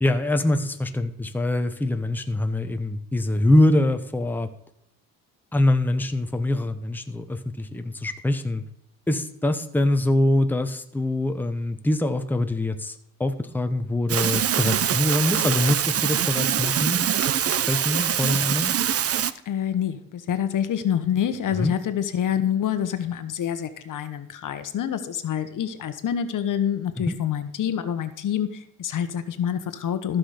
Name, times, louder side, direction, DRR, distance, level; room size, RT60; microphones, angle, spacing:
voice 1, 0.0-4.5 5.5-8.6 9.1-12.9 13.2-17.1 17.4-18.8 21.5-21.7 27.0-27.2, left 1 dB, 5° left, 7 dB, 1.0 m, -24 dB
sound 1, 14.1-19.3, right 9 dB, 40° right, 0.6 m, -24 dB
voice 2, 19.5-30.2, left 9 dB, 60° left, 11 dB, 1.2 m, -27 dB
14.5 x 6.1 x 5.0 m, 0.79 s
cardioid pair, 90°, 36 cm